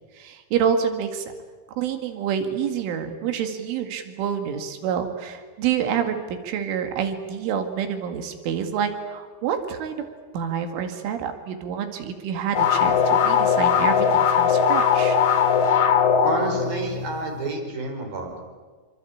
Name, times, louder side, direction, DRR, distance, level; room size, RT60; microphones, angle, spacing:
voice 1, 0.1-1.3 1.7-10.1 10.3-15.2, right 8 dB, 90° right, 7 dB, 4.6 m, -27 dB
sound 1, 12.5-17.2, left 7 dB, 50° left, 2.7 m, -20 dB
voice 2, 16.2-18.4, right 2 dB, 50° right, 3 dB, 6.7 m, -29 dB
27.5 x 25.0 x 8.7 m, 1.4 s
omnidirectional pair, 5.4 m